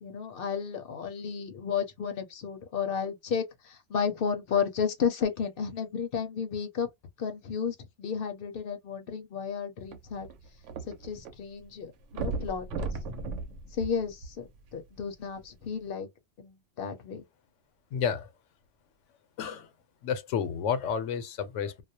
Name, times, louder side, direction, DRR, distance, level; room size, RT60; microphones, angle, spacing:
voice 1, 0.0-6.9 7.2-10.3 10.8-12.9 13.7-16.1 16.4-17.2, left 7 dB, 60° left, 0.7 m, -33 dB
sound 1, 9.8-11.3 11.6-11.7 12.1-14.7 15.4-15.5, right 3 dB, 80° right, 0.9 m, -36 dB
voice 2, 17.9-18.3 19.4-19.7 20.0-21.8, left 7 dB, 85° left, 0.9 m, -31 dB
2.3 x 2.0 x 2.6 m
omnidirectional pair, 1.2 m